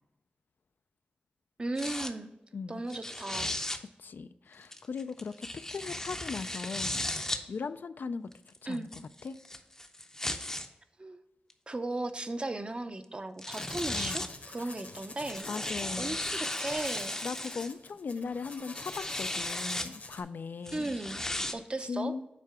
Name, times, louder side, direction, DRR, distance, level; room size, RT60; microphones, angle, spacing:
voice 1, 1.6-2.3 2.7-3.6 8.7-8.9 11.0-11.2 11.7-17.2 20.7-21.2 21.5-22.1, right 2 dB, 30° right, 9 dB, 0.6 m, -36 dB
sound 1, 1.8-2.1 2.9-3.8 4.7-7.4 8.3-10.7 11.5-11.6 13.0-13.1 13.4-14.4 15.1-17.7 18.5-19.9 20.7-21.5, left 1 dB, 15° left, 0.6 m, -36 dB
voice 2, 2.5-2.9 4.0-7.0 7.5-8.3 8.6-8.9 9.2-9.4 13.9-14.3 14.6-14.7 15.5-16.2 17.2-21.0 21.9-22.2, left 5 dB, 70° left, 12 dB, 0.3 m, -38 dB
sound 2, 13.5-20.2, left 3 dB, 50° left, 0.9 m, -47 dB
7.4 x 4.7 x 3.5 m, 0.95 s
wide cardioid pair, 90°, 3 cm